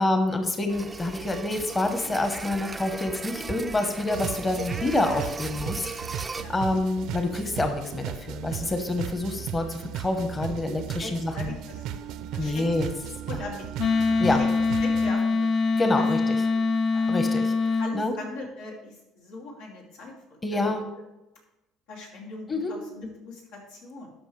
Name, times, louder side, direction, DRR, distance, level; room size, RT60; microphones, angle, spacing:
voice 1, 0.0-11.5 12.4-12.9 14.2-14.4 15.7-16.2 17.1-17.5 17.9-18.1 20.4-20.8 22.5-22.7, left 2 dB, 20° left, 6 dB, 1.1 m, -27 dB
sound 1, 0.7-6.4, right 3 dB, 20° right, 0.4 m, -37 dB
sound 2, 4.1-15.1, right 10 dB, 70° right, 0.5 m, -36 dB
voice 2, 11.0-12.8 13.3-14.5 14.8-16.0 16.5-16.6 16.9-17.1 17.8-20.7 21.9-24.1, left 3 dB, 85° left, -3 dB, 2.7 m, -41 dB
Wind instrument woodwind instrument, 13.8-17.9, left 4 dB, 45° left, 0.5 m, -23 dB
13.0 x 5.5 x 3.3 m, 0.98 s
cardioid pair, 110°, 0 cm